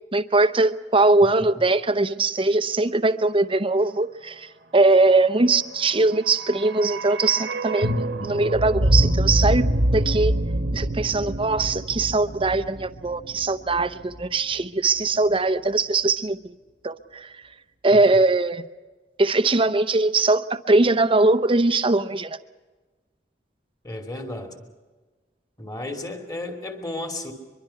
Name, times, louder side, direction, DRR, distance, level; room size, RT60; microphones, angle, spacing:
voice 1, 0.1-9.6 9.9-10.3 10.7-16.5 16.8-17.3 17.8-18.7 19.2-22.4, right 2 dB, 30° right, 13 dB, 0.8 m, -21 dB
sound 1, 6.1-14.3 14.5-14.6, right 1 dB, 75° right, 1.5 m, -25 dB
voice 2, 23.8-24.6 25.6-27.3, left 2 dB, 20° left, 4 dB, 2.7 m, -33 dB
23.5 x 23.5 x 5.8 m, 1.3 s
head